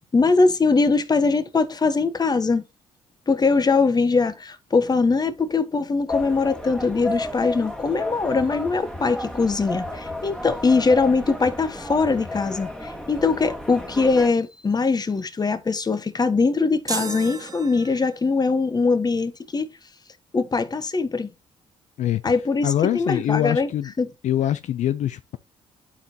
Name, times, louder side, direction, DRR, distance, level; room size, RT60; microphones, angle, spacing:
voice 1, 0.1-2.6 3.3-19.7 20.3-21.3 22.2-22.7 22.9-23.7 24.0-24.1, left 4 dB, 30° left, 1.3 m, -21 dB
sound 1, 6.1-14.3, left 1 dB, 5° left, 2.0 m, -33 dB
sound 2, 16.9-18.4, right 4 dB, 30° right, 1.6 m, -33 dB
voice 2, 22.0-22.3 22.6-23.9 24.2-25.4, left 11 dB, 70° left, 0.6 m, -24 dB
11.5 x 4.8 x 2.9 m
supercardioid pair, 65°, 13 cm